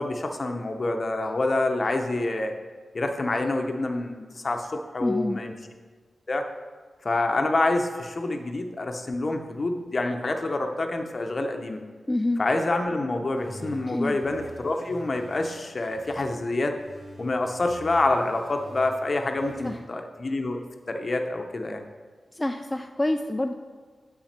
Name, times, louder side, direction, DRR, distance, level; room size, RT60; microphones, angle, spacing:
voice 1, 0.0-2.5 2.9-5.5 6.3-6.4 7.0-11.8 12.4-16.8 17.2-20.6 20.9-21.8, left 2 dB, 45° left, 5 dB, 0.7 m, -27 dB
voice 2, 5.0-5.4 12.1-12.4 13.9-14.2 19.6-19.8 22.3-23.5, left 1 dB, 15° left, 5 dB, 0.3 m, -27 dB
sound 1, 13.4-16.4 16.8-19.8, right 1 dB, 50° right, 2.5 m, -46 dB
7.4 x 5.9 x 4.3 m, 1.5 s
wide cardioid pair, 90°, 0 cm